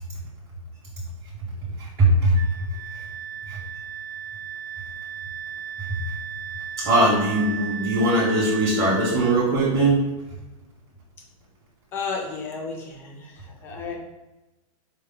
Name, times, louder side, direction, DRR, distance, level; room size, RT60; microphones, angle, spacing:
voice 1, 2.0-2.3 3.5-3.6 6.8-10.0, right 2 dB, 15° right, -10 dB, 0.7 m, -20 dB
Wind instrument woodwind instrument, 2.3-9.4, right 8 dB, 75° right, 0.5 m, -35 dB
voice 2, 11.9-14.0, left 5 dB, 10° left, 0 dB, 0.3 m, -33 dB
4.2 x 2.0 x 3.5 m, 1.1 s
supercardioid pair, 165°, 19 cm